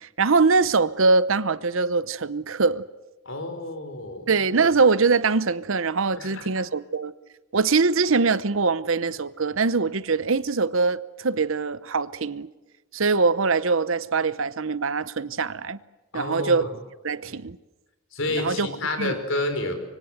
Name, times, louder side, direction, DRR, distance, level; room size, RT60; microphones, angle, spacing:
voice 1, 0.0-2.8 4.3-7.1 7.5-12.5 12.9-15.8 16.1-16.7 17.0-17.6 18.3-18.7 19.0-19.2, right 4 dB, 60° right, 0.8 m, -23 dB
voice 2, 3.2-4.3 6.2-6.5 16.1-16.7 18.1-19.7, left 2 dB, 60° left, 5.0 m, -29 dB
25.0 x 24.5 x 8.0 m
head